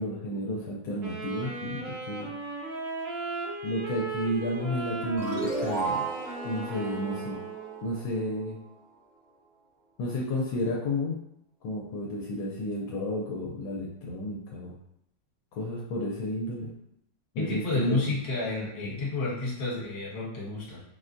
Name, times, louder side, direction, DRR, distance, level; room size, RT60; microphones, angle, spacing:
voice 1, 0.0-2.3 3.6-6.0 6.4-7.4 7.8-8.6 10.0-11.2 11.6-14.7 15.5-16.7 17.3-18.0 18.8-18.9, left 1 dB, 80° left, -3 dB, 1.3 m, -32 dB
Wind instrument woodwind instrument, 1.0-7.9, right 3 dB, 85° right, 0.6 m, -36 dB
sound 1, 5.2-8.4, right 3 dB, 45° right, 1.3 m, -34 dB
voice 2, 17.4-20.8, left 2 dB, 55° left, -6 dB, 1.6 m, -30 dB
4.0 x 2.2 x 2.5 m, 0.77 s
omnidirectional pair, 2.1 m